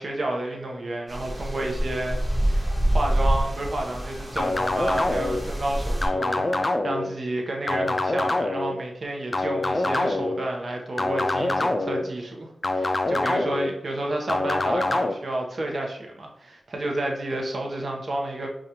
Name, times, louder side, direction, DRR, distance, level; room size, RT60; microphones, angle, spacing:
voice 1, 0.0-2.2 2.4-18.5, right 1 dB, 55° right, 1 dB, 0.8 m, -30 dB
sound 1, 1.1-6.1, right 1 dB, 30° right, 1.2 m, -26 dB
sound 2, 4.4-5.4 6.0-7.1 7.7-8.7 9.3-10.4 11.0-12.0 12.6-13.7 14.3-15.1, left 2 dB, 35° left, 0.3 m, -25 dB
4.9 x 2.4 x 2.8 m, 0.76 s
wide cardioid pair, 70°, 0 cm